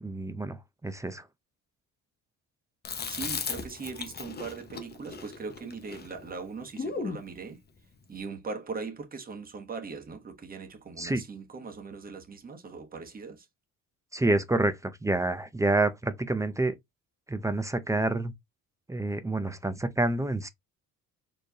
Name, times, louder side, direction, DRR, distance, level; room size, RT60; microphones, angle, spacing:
voice 1, 0.0-1.2 11.0-11.2 14.1-16.7 17.3-18.3 18.9-20.5, right 2 dB, 10° right, 0.4 m, -28 dB
Chewing mastication, 2.8-7.2, left 5 dB, 30° left, 0.8 m, -37 dB
voice 2, 3.1-7.6 8.1-13.5, right 4 dB, 25° right, 1.1 m, -40 dB
4.4 x 3.2 x 2.8 m
cardioid pair, 125°, 34 cm